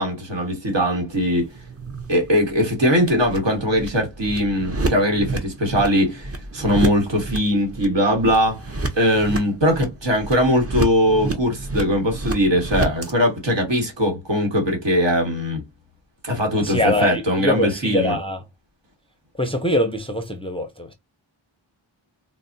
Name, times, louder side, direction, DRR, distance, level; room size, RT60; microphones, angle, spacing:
voice 1, 0.0-1.5 2.1-15.6 16.2-18.2, equal, 65° right, 1.4 m, -20 dB
sound 1, 1.1-13.1, right 2 dB, 30° right, 0.7 m, -30 dB
voice 2, 16.5-18.4 19.4-20.9, left 1 dB, 10° left, 0.5 m, -23 dB
3.9 x 2.0 x 2.6 m
wide cardioid pair, 60°, 47 cm